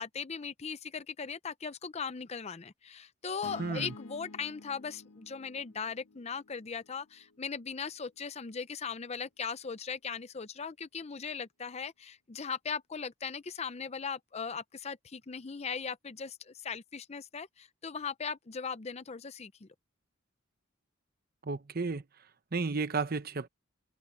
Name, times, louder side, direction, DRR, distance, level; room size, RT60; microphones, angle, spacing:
voice 1, 0.0-19.7, left 6 dB, 30° left, 0.5 m, -39 dB
sound 1, 3.4-7.7, left 3 dB, 90° left, 0.9 m, -51 dB
voice 2, 3.6-3.9 21.5-22.0 22.5-23.5, right 4 dB, 45° right, 0.8 m, -32 dB
open air
head